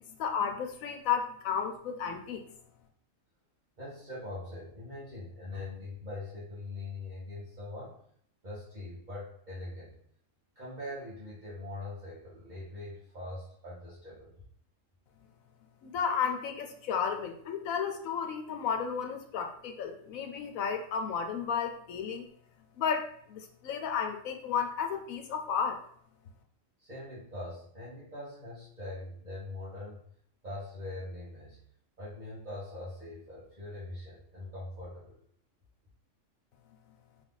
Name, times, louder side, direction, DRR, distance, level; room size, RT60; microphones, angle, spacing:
voice 1, 0.0-2.4 15.8-22.2 22.8-25.8, left 7 dB, 85° left, 5 dB, 1.1 m, -33 dB
voice 2, 3.8-7.9 8.4-10.0 10.5-14.3 26.8-30.0 30.4-31.6 32.0-35.2, left 2 dB, 35° right, -10 dB, 1.4 m, -42 dB
3.6 x 3.3 x 3.9 m, 0.62 s
omnidirectional pair, 1.4 m